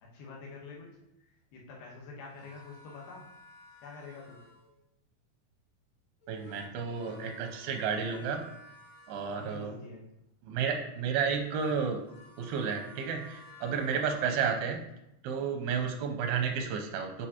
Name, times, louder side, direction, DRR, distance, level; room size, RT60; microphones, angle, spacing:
voice 1, 0.0-0.9 1.2-3.3 3.8-4.4 9.3-10.0 13.7-14.1 15.6-15.8, left 4 dB, 80° left, -2 dB, 3.1 m, -47 dB
sound 1, 2.2-4.8 6.2-9.9 11.1-14.8, left 2 dB, 50° left, 3.0 m, -54 dB
voice 2, 6.3-8.4 9.1-9.7 10.4-12.0 12.4-14.8 15.2-17.3, right 6 dB, 90° right, 5 dB, 2.6 m, -32 dB
8.2 x 4.7 x 2.9 m, 0.83 s
omnidirectional pair, 4.3 m